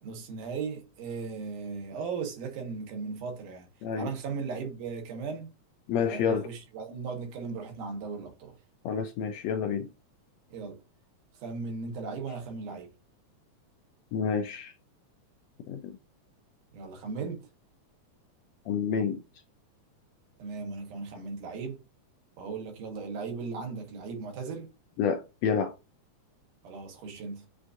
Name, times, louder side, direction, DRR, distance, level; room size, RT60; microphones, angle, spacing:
voice 1, 0.0-3.7 4.0-5.5 6.0-8.6 10.5-10.8 11.3-12.9 16.7-17.5 20.4-21.8 22.4-24.7 26.6-27.4, right 5 dB, 85° right, 2.7 m, -37 dB
voice 2, 5.9-6.5 8.8-9.9 14.1-14.7 15.7-16.0 18.7-19.2 25.0-25.7, left 7 dB, 80° left, 1.6 m, -29 dB
7.4 x 2.6 x 2.4 m
omnidirectional pair, 3.5 m